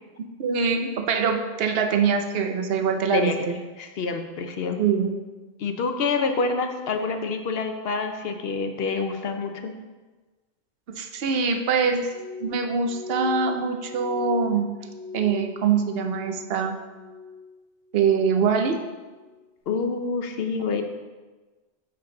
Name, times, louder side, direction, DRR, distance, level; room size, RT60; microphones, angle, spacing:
voice 1, 0.4-3.6 4.8-5.1 10.9-12.1 12.4-14.7 15.1-16.7 17.9-18.8, right 6 dB, 65° right, 6 dB, 0.9 m, -23 dB
voice 2, 3.1-3.5 3.8-4.8 5.6-9.7 19.7-20.8, left 4 dB, 65° left, 6 dB, 1.0 m, -27 dB
Glass, 12.1-16.7 17.0-17.6 18.0-18.6 19.1-19.4, left 4 dB, 40° right, 2.3 m, -38 dB
7.9 x 7.0 x 3.8 m, 1.3 s
omnidirectional pair, 1.1 m